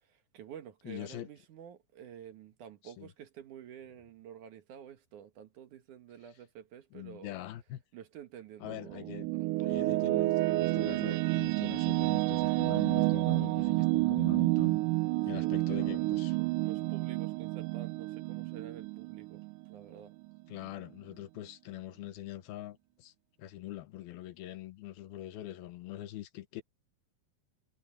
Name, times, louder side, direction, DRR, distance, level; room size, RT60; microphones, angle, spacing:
voice 1, 0.3-7.4 7.9-9.9 15.3-16.1 16.3-20.1, right 9 dB, 65° right, 2.7 m, -50 dB
voice 2, 0.8-1.3 2.8-3.1 6.9-7.8 8.6-9.3 9.6-14.8 15.3-16.4 20.5-23.1 23.4-26.6, left 14 dB, 85° left, 3.0 m, -43 dB
sound 1, 8.7-20.0, right 21 dB, 80° right, 1.9 m, -30 dB
omnidirectional pair, 4.2 m